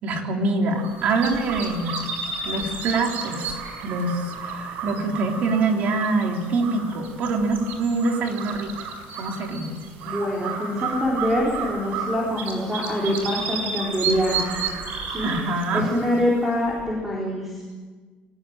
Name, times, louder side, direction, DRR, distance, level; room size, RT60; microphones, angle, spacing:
voice 1, 0.0-1.9 2.4-8.7 9.2-9.7 15.2-15.9, right 3 dB, 50° right, 2 dB, 3.7 m, -25 dB
sound 1, 0.8-16.8, right 5 dB, 70° right, 5.2 m, -32 dB
voice 2, 10.0-14.5 15.1-17.6, equal, 10° right, -4 dB, 4.2 m, -25 dB
23.5 x 19.0 x 9.0 m, 1.4 s
cardioid pair, 165°, 3 cm